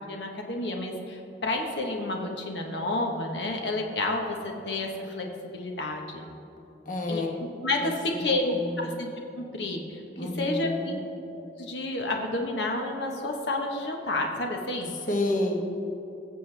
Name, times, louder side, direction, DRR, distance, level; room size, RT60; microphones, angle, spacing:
voice 1, 0.1-6.2 7.1-7.2 7.6-9.1 9.4-11.0 11.3-14.9, left 2 dB, 80° left, 1 dB, 1.1 m, -30 dB
voice 2, 6.8-7.3 7.8-7.9 8.2-9.0 10.2-11.0 15.1-15.6, left 2 dB, 45° left, 0 dB, 1.3 m, -30 dB
20.5 x 7.4 x 3.4 m, 2.8 s
head